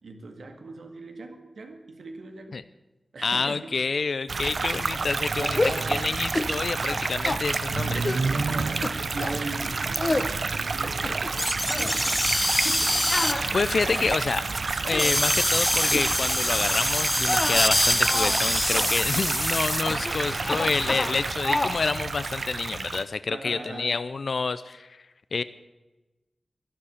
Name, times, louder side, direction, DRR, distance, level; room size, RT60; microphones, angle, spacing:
voice 1, 0.0-2.6 3.1-3.7 5.3-6.1 8.3-11.1 11.3-12.9 23.3-24.1, right 3 dB, 90° right, 4 dB, 2.0 m, -39 dB
voice 2, 3.2-5.6 5.9-8.3 13.5-14.5 14.8-25.0 25.3-25.4, left 4 dB, 75° left, 14 dB, 0.5 m, -28 dB
sound 1, 4.3-23.0, right 4 dB, 70° right, 0.7 m, -29 dB
sound 2, 5.5-5.9 6.3-6.6 6.8-7.4 8.0-8.3 8.8-9.4 9.9-10.3 10.8-11.4 11.7-11.9 13.1-14.1 14.7-15.1 15.9-16.1 16.4-16.7 17.2-18.4 18.7-18.9 19.9-20.1 20.4-21.2 21.4-21.8, left 2 dB, 40° left, 1.1 m, -29 dB
sound 3, 11.4-21.3, left 1 dB, 10° left, 1.1 m, -26 dB
12.5 x 11.5 x 8.6 m, 1.1 s
wide cardioid pair, 60°, 0 cm